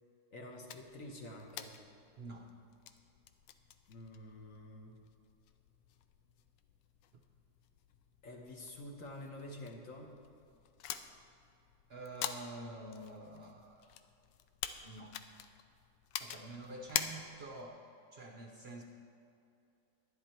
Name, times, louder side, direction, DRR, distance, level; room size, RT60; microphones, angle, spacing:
voice 1, 0.3-1.8 3.9-5.0 8.2-10.2, left 1 dB, 50° left, 1 dB, 1.2 m, -48 dB
sound 1, 0.7-17.7, left 10 dB, 85° left, 1.3 m, -47 dB
voice 2, 2.2-2.5 11.9-14.0 14.8-15.2 16.2-17.8 18.1-18.8, right 2 dB, 70° right, 2 dB, 0.5 m, -47 dB
11.5 x 10.5 x 4.4 m, 2.7 s
omnidirectional pair, 2.0 m